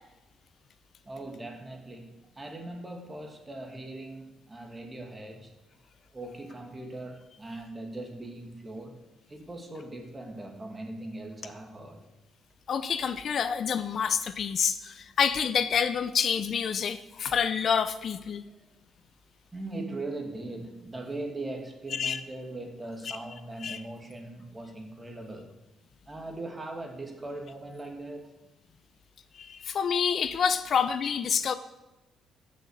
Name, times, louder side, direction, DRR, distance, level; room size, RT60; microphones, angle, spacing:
voice 1, 1.0-5.5 6.1-9.0 9.3-12.1 18.3-18.7 19.5-25.5 26.1-28.3, right 2 dB, 20° right, 3 dB, 2.3 m, -40 dB
voice 2, 12.7-18.4 21.9-22.2 23.1-23.2 23.6-23.8 29.3-31.5, left 7 dB, 55° left, 12 dB, 0.7 m, -28 dB
16.0 x 6.5 x 6.7 m, 1.0 s
cardioid pair, 105°, 0 cm